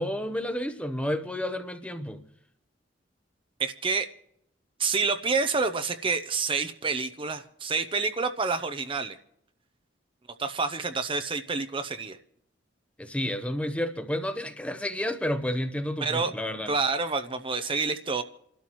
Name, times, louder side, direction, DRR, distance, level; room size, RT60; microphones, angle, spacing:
voice 1, 0.0-2.2 13.0-16.7, left 1 dB, 5° left, 0.8 m, -30 dB
voice 2, 3.6-4.1 4.8-9.2 10.4-12.2 16.0-16.3 16.7-18.2, right 4 dB, 30° right, 0.6 m, -28 dB
29.0 x 12.5 x 3.0 m
head